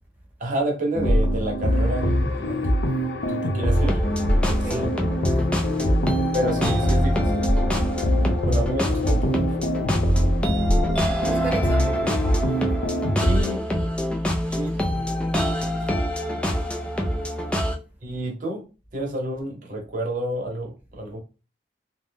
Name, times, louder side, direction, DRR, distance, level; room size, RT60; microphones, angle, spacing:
voice 1, 0.4-2.7 3.3-4.0 4.7-4.9 6.3-7.6 8.4-9.4 13.2-13.7 14.5-15.0 18.0-18.6 18.9-21.2, right 1 dB, 50° right, 0.8 m, -29 dB
sound 1, 0.9-13.4, equal, 65° left, 0.6 m, -23 dB
sound 2, 3.7-17.8, equal, 5° left, 0.4 m, -26 dB
voice 2, 4.4-4.9 5.3-5.5 11.2-12.0 14.8-16.0, right 3 dB, 10° right, 0.9 m, -37 dB
2.5 x 2.1 x 3.4 m
head